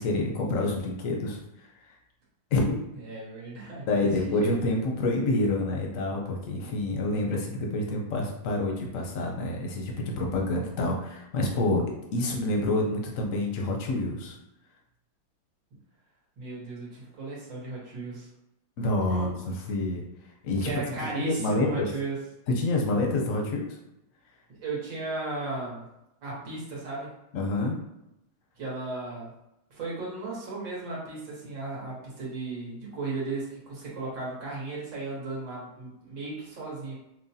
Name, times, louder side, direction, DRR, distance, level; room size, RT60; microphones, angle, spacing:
voice 1, 0.0-1.4 2.5-2.8 3.9-11.8 12.1-14.4 18.8-20.0 20.4-20.7 21.2-21.9 22.5-23.8 27.3-27.8, left 2 dB, 60° left, 0 dB, 0.8 m, -27 dB
voice 2, 3.0-4.7 16.4-18.3 19.1-19.3 20.6-22.2 24.6-25.9 26.2-27.1 28.6-29.3 29.7-36.9, right 3 dB, 65° right, -5 dB, 2.0 m, -35 dB
6.0 x 2.2 x 2.7 m, 0.87 s
omnidirectional pair, 2.2 m